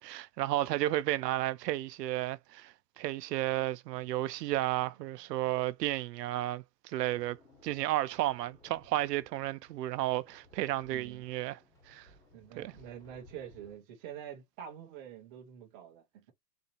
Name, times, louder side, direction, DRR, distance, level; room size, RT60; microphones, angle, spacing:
voice 1, 0.0-7.4 7.6-11.6 11.9-12.1 12.6-12.7, right 15 dB, 75° right, 0.6 m, -33 dB
sound 1, 7.1-13.8, left 1 dB, 5° left, 0.9 m, -61 dB
voice 2, 10.9-11.2 12.3-16.3, right 9 dB, 15° right, 0.3 m, -47 dB
3.8 x 2.8 x 2.8 m
hypercardioid pair, 135°, 49 cm